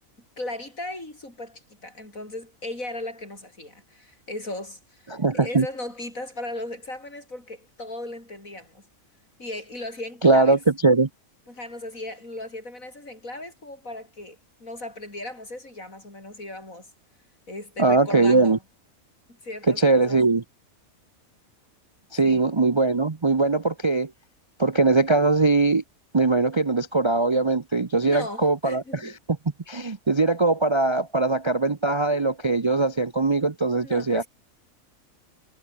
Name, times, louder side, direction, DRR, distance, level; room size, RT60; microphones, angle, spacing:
voice 1, 0.4-5.1 5.4-8.8 9.4-10.6 11.5-16.9 17.5-18.6 19.4-20.2 22.2-22.5 28.0-29.1 33.8-34.3, left 1 dB, 70° left, 8.3 m, -37 dB
voice 2, 5.1-5.7 10.2-11.1 17.8-18.6 19.7-20.4 22.1-24.1 24.6-25.8 26.1-29.2 29.7-34.2, right 3 dB, 30° right, 0.6 m, -21 dB
omnidirectional pair, 1.5 m